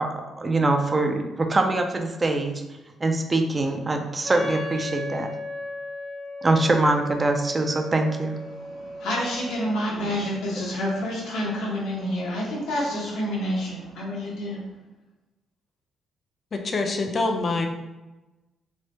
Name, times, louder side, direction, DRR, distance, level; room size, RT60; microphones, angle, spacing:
voice 1, 0.0-2.5 3.0-5.3 6.4-8.3, right 2 dB, 25° right, 5 dB, 0.4 m, -23 dB
Wind instrument woodwind instrument, 4.2-9.9, left 1 dB, 75° right, 0.9 m, -36 dB
voice 2, 8.5-14.6, equal, 85° left, -3 dB, 0.9 m, -28 dB
voice 3, 16.5-17.7, left 3 dB, 45° left, 4 dB, 0.4 m, -25 dB
3.3 x 2.1 x 3.1 m, 1.1 s
cardioid pair, 90°, 0 cm